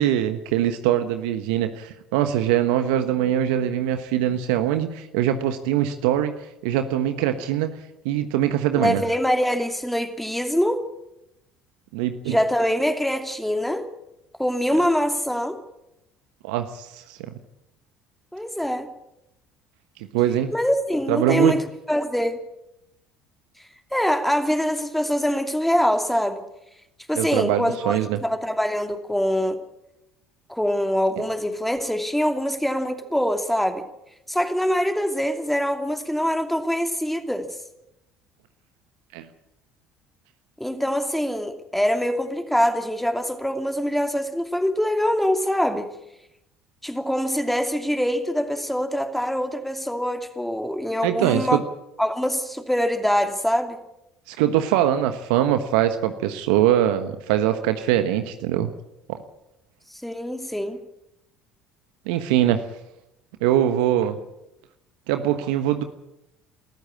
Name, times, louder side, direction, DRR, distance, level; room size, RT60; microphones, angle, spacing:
voice 1, 0.0-6.3 6.6-7.7 8.0-9.0 11.9-12.4 16.4-17.3 20.1-20.5 21.1-21.5 27.1-28.2 39.1-39.3 51.0-51.6 54.3-58.7 59.1-59.2 62.1-62.6 63.4-64.2 65.1-65.8, right 11 dB, 75° right, 1.2 m, -22 dB
voice 2, 8.7-10.9 12.3-13.9 14.4-15.6 18.3-18.9 20.5-22.4 23.9-26.4 27.1-29.6 30.5-33.8 34.3-37.6 40.6-45.9 46.8-51.6 52.0-53.8 60.0-60.8, equal, 5° left, 2.7 m, -24 dB
21.5 x 14.0 x 8.6 m
hypercardioid pair, 65°, 5 cm